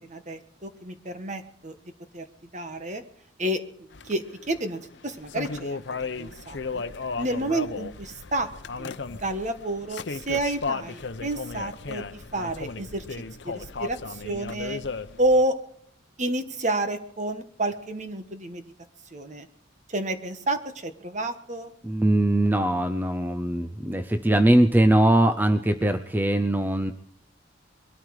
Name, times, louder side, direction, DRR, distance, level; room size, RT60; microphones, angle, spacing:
voice 1, 0.1-1.7 2.1-2.2 2.5-3.0 3.4-3.6 4.0-5.8 6.2-6.8 7.2-8.5 8.8-13.0 13.4-14.8 15.2-15.5 16.2-18.6 19.1-19.5 19.9-21.7, right 1 dB, 40° right, 9 dB, 1.4 m, -29 dB
sound 1, 3.9-15.4, left 4 dB, 65° left, 0.7 m, -35 dB
voice 2, 21.8-26.9, right 1 dB, 10° right, 9 dB, 0.6 m, -21 dB
22.0 x 13.0 x 4.9 m, 0.70 s
head